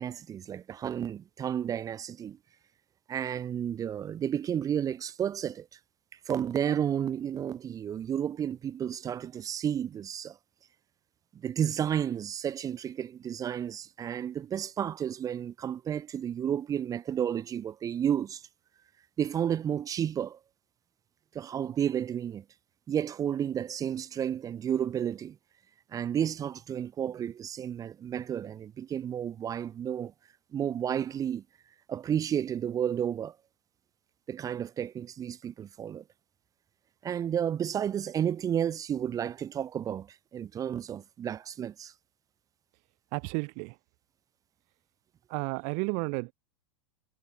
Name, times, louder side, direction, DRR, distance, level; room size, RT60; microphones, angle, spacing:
voice 1, 0.0-2.4 3.1-5.7 6.3-10.4 11.4-18.4 19.2-20.4 21.3-22.4 22.9-25.4 25.9-30.1 30.5-31.4 31.9-33.3 34.3-36.0 37.0-40.1 40.3-41.9, right 9 dB, 20° right, 0.6 m, -32 dB
voice 2, 43.1-43.8 45.3-46.3, right 39 dB, 45° right, 1.8 m, -32 dB
figure-of-eight pair, 95°, 16 cm